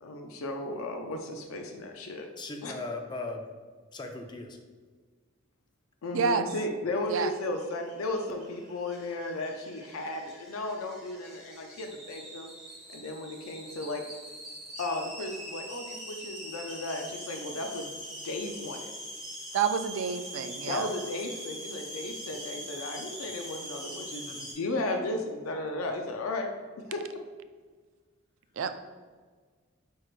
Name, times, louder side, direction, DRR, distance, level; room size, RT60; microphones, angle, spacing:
voice 1, 0.0-2.3 2.6-2.7 6.0-12.5 12.9-14.0 14.8-17.9 18.2-18.9 20.6-26.5 26.9-27.2, left 2 dB, 80° left, 4 dB, 0.5 m, -35 dB
voice 2, 2.4-3.5 3.9-4.6, left 3 dB, 20° left, 4 dB, 0.4 m, -38 dB
voice 3, 6.1-6.4 7.1-7.3 19.5-20.9 28.6-28.7, right 6 dB, 65° right, 9 dB, 0.3 m, -28 dB
sound 1, 7.2-24.5, equal, 5° right, 1.4 m, -43 dB
4.6 x 4.5 x 2.4 m, 1.5 s
head